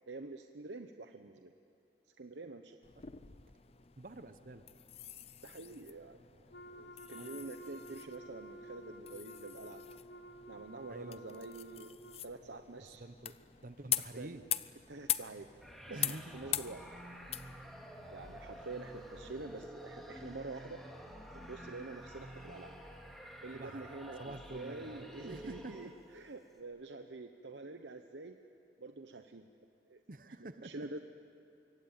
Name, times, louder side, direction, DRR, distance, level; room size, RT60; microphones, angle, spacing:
voice 1, 0.1-1.5 2.2-2.8 5.4-9.8 10.5-12.0 12.2-13.0 14.1-14.4 14.9-15.5 15.9-16.8 18.1-20.8 21.3-22.7 23.4-28.4 28.8-29.5 29.9-30.0 30.6-31.0, right 3 dB, 90° right, 6 dB, 1.0 m, -47 dB
sound 1, 2.8-19.7, left 11 dB, 35° left, 0.6 m, -43 dB
voice 2, 4.0-4.6 7.1-7.5 10.9-11.2 12.8-13.3 13.6-14.4 15.9-16.4 23.5-23.9 24.2-25.9 30.1-30.9, right 2 dB, 50° right, 11 dB, 0.9 m, -48 dB
Wind instrument woodwind instrument, 6.5-12.3, right 1 dB, 65° left, 1.0 m, -52 dB
sound 2, 15.6-26.2, equal, ahead, 2.6 m, -50 dB
24.5 x 24.0 x 9.0 m, 2.8 s
head